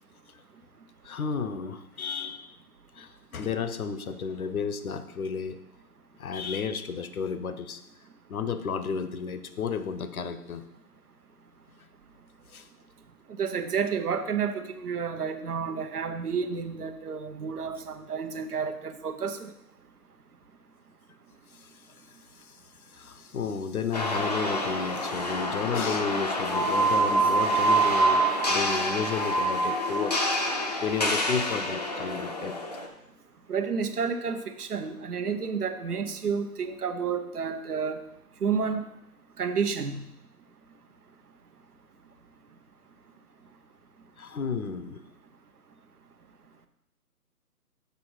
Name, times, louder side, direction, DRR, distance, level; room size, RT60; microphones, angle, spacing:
voice 1, 1.0-2.4 2.9-5.6 6.2-7.8 8.3-10.6 12.5-12.7 21.5-21.7 22.4-22.6 22.9-32.6 44.2-45.0, left 6 dB, 65° left, 11 dB, 0.8 m, -32 dB
voice 2, 13.4-19.5 33.5-38.0 38.4-38.8 39.4-40.0, right 6 dB, 75° right, 9 dB, 1.0 m, -30 dB
sound 1, 23.9-32.9, right 1 dB, 25° left, 0.5 m, -26 dB
6.9 x 5.1 x 4.8 m, 0.80 s
hypercardioid pair, 155°, 46 cm